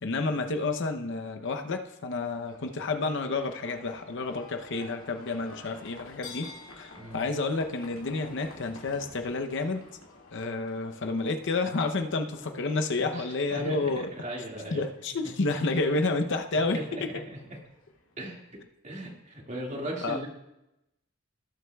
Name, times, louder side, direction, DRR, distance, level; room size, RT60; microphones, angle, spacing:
voice 1, 0.0-6.5 6.8-9.8 10.3-14.1 14.7-17.2 20.0-20.2, left 3 dB, 60° left, 6 dB, 0.7 m, -30 dB
Livestock farm animals working animals, 2.1-18.6, left 3 dB, 85° left, 2.1 m, -51 dB
voice 2, 6.9-7.2 13.0-14.9 16.7-17.6 18.2-20.3, right 1 dB, 35° right, -1 dB, 2.0 m, -38 dB
17.5 x 7.8 x 2.3 m, 0.89 s
head